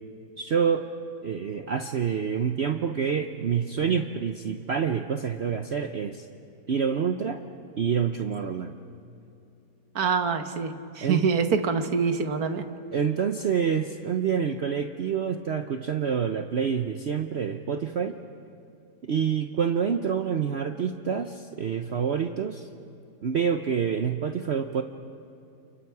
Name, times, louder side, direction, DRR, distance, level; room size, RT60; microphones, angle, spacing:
voice 1, 0.4-0.8 1.2-6.3 6.7-7.4 7.8-8.8 11.0-11.2 12.9-18.2 19.0-22.7 23.2-24.8, right 7 dB, 50° right, 7 dB, 0.9 m, -27 dB
voice 2, 10.0-12.6, right 5 dB, 70° right, 7 dB, 1.7 m, -25 dB
29.5 x 29.0 x 4.7 m, 2.6 s
omnidirectional pair, 1.7 m